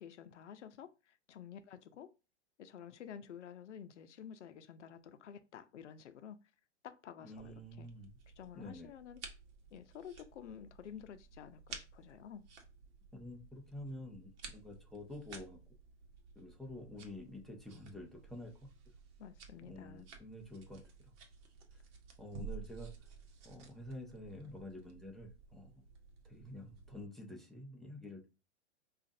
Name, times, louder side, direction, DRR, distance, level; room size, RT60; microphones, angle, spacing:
voice 1, 0.0-2.1 2.6-6.4 6.8-7.9 8.4-9.2 9.7-12.5 19.2-20.1 22.3-22.4, left 8 dB, 90° left, 0.6 m, -51 dB
voice 2, 7.2-8.1 8.5-8.9 13.1-15.6 16.4-18.7 19.6-21.1 22.2-22.9 23.4-25.8 26.2-28.3, left 1 dB, ahead, 0.3 m, -49 dB
sound 1, 7.3-27.1, right 5 dB, 55° right, 1.0 m, -54 dB
4.9 x 2.4 x 2.6 m
hypercardioid pair, 125°, 35 cm